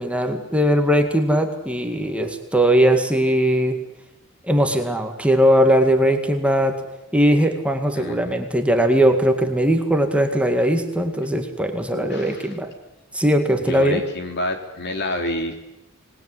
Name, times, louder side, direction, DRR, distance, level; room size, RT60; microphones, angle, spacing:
voice 1, 0.0-3.8 4.5-6.8 7.1-12.7 13.1-14.0, equal, 5° right, 4 dB, 2.1 m, -19 dB
voice 2, 8.0-8.4 11.9-12.5 13.7-15.5, left 1 dB, 55° left, 5 dB, 3.7 m, -28 dB
26.0 x 20.0 x 9.7 m, 0.94 s
head